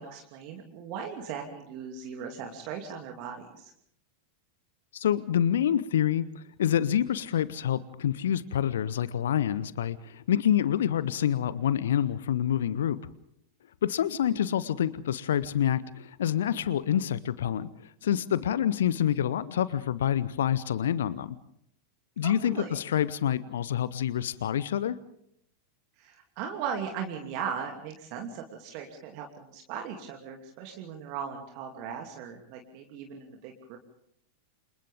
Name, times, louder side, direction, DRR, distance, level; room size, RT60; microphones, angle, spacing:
voice 1, 0.0-3.7 22.2-22.7 26.0-33.8, right 7 dB, 45° right, 2 dB, 2.8 m, -38 dB
voice 2, 4.9-13.0 13.8-17.7 18.0-21.4 22.2-25.0, left 10 dB, 60° left, 18 dB, 0.8 m, -27 dB
29.5 x 27.5 x 3.6 m, 0.71 s
figure-of-eight pair, 90°, 0 cm